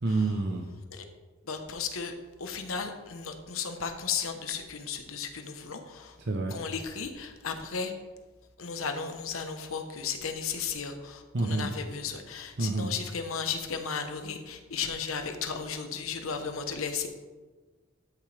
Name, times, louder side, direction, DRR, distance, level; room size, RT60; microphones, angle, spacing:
voice 1, 0.0-0.6 6.3-6.6 11.3-11.7 12.6-12.9, right 3 dB, 50° right, 3 dB, 0.7 m, -28 dB
voice 2, 1.4-6.2 6.5-7.9 8.6-17.1, left 6 dB, 80° left, 6 dB, 1.0 m, -35 dB
12.5 x 6.9 x 3.3 m, 1.3 s
head